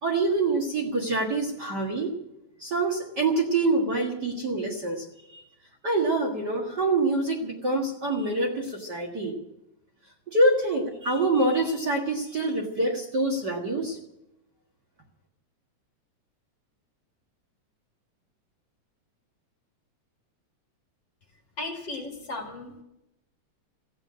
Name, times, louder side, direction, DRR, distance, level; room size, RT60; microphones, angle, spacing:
voice 1, 0.0-2.1 2.6-5.4 5.8-9.4 10.3-14.0, right 2 dB, 40° right, 0 dB, 2.0 m, -26 dB
voice 2, 21.6-22.7, left 2 dB, 40° left, 1 dB, 2.7 m, -35 dB
15.0 x 8.8 x 9.6 m, 0.87 s
omnidirectional pair, 3.3 m